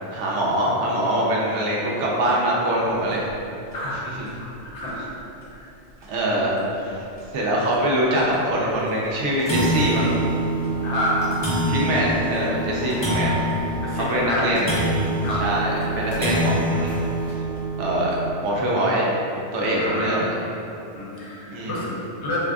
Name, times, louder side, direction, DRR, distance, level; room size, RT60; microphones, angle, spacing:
voice 1, 0.1-3.3 4.0-4.3 6.1-7.0 7.3-10.1 11.7-13.4 13.9-14.8 15.4-16.9 17.8-19.0 19.5-20.3 21.5-21.9, right 1 dB, 75° right, -4 dB, 0.9 m, -23 dB
sound 1, 3.1-3.3 3.7-3.8 4.3-4.4 5.4-5.5 6.0-6.1 6.6-6.7 7.2-7.3 8.3-8.5 8.9-9.0 9.2-18.3, right 1 dB, 30° left, 0.6 m, -25 dB
voice 2, 3.7-4.1 4.6-5.0 5.5-5.7 10.8-11.3 13.8-14.7 15.2-15.5 19.6-20.2 20.9-22.4, left 1 dB, 70° left, -6 dB, 1.0 m, -28 dB
3.5 x 2.7 x 2.3 m, 2.8 s
omnidirectional pair, 1.2 m